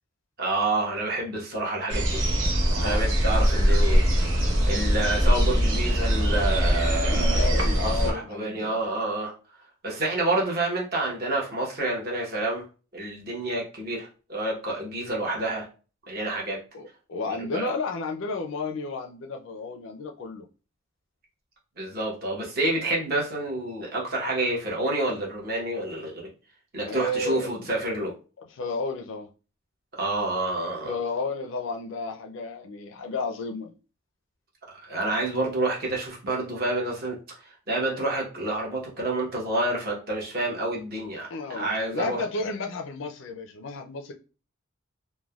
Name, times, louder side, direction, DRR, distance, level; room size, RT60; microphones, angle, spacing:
voice 1, 0.4-2.2 2.8-4.0 4.7-9.3 9.8-12.6 12.9-15.7 16.1-16.6 17.5-17.7 21.8-26.3 26.7-28.1 29.9-30.9 34.8-37.2 37.7-42.2, right 2 dB, 45° right, 1.0 m, -28 dB
sound 1, 1.9-8.1, equal, 80° right, 0.8 m, -22 dB
voice 2, 2.7-3.0 7.0-8.8 16.7-20.5 26.9-28.1 28.4-29.3 30.8-33.7 41.3-44.1, left 3 dB, 65° left, 0.4 m, -32 dB
3.3 x 2.1 x 2.3 m
head